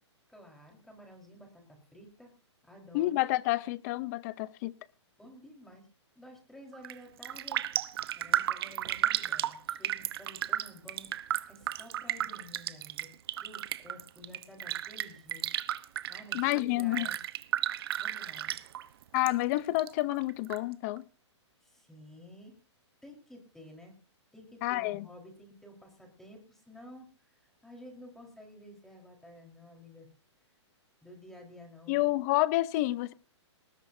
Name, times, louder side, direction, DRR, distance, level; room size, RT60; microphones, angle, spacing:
voice 1, 0.3-2.3 2.6-3.2 5.2-5.9 6.1-7.6 8.1-13.1 13.4-15.5 15.8-17.2 18.0-18.7 21.6-22.6 23.0-23.9 24.3-30.1 31.0-32.2, left 1 dB, ahead, 4.5 m, -52 dB
voice 2, 2.9-4.7 16.3-17.1 19.1-21.0 24.6-25.1 31.9-33.1, left 18 dB, 35° left, 0.8 m, -29 dB
Raindrop, 6.7-7.0 7.2-19.3 19.6-20.6 21.0-21.1, right 12 dB, 55° right, 1.1 m, -33 dB
20.0 x 16.5 x 2.8 m
hypercardioid pair, 145°, 15 cm